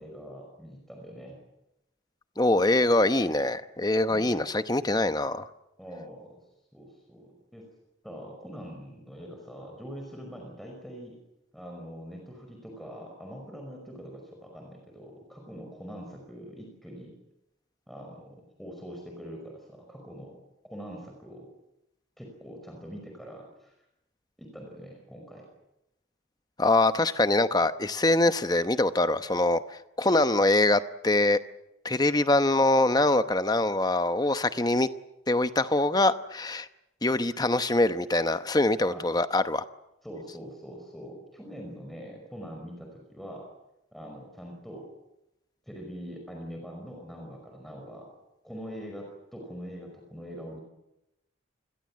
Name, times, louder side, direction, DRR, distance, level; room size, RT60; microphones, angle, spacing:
voice 1, 0.0-1.4 4.1-4.3 5.8-6.4 6.7-7.7 8.0-11.2 11.5-17.1 17.9-20.4 20.7-21.5 22.2-23.7 24.4-25.4 38.8-39.0 40.0-43.4 43.9-44.9 45.7-48.1 48.4-50.6, equal, ahead, 1 dB, 5.3 m, -43 dB
voice 2, 2.4-5.5 26.6-31.4 31.8-34.9 35.3-36.7 37.0-39.6, left 2 dB, 20° left, 11 dB, 0.9 m, -24 dB
27.5 x 21.5 x 7.5 m, 0.90 s
head